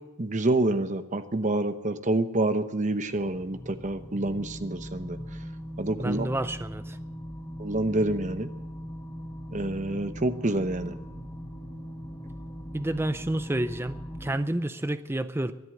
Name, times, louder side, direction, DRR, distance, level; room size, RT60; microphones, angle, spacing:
voice 1, 0.2-5.2 5.8-6.3 7.6-8.5 9.5-11.0, right 2 dB, 35° right, 10 dB, 0.9 m, -27 dB
sound 1, 3.1-14.4, equal, 20° left, 1.5 m, -40 dB
voice 2, 6.0-7.0 12.7-15.5, right 1 dB, 10° right, 11 dB, 0.5 m, -29 dB
23.0 x 8.3 x 7.7 m, 1.0 s
head